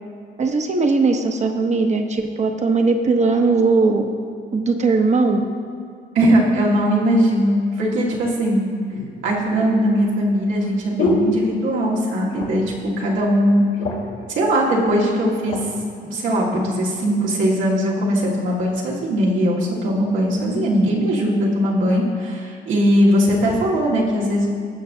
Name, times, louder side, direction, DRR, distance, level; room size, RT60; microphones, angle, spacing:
voice 1, 0.4-4.1 4.5-5.4, right 3 dB, 35° right, 5 dB, 0.9 m, -19 dB
voice 2, 6.1-8.7 9.2-12.6 13.0-13.6 14.3-15.6 16.0-24.5, equal, 85° right, -4 dB, 1.8 m, -19 dB
sound 1, 8.0-8.1 8.9-12.0 12.3-12.8 13.1-13.2 13.5-14.2 14.9-15.7 16.3-16.5, left 2 dB, 75° left, 2.1 m, -27 dB
17.0 x 5.9 x 2.7 m, 2.3 s
cardioid pair, 90°, 20 cm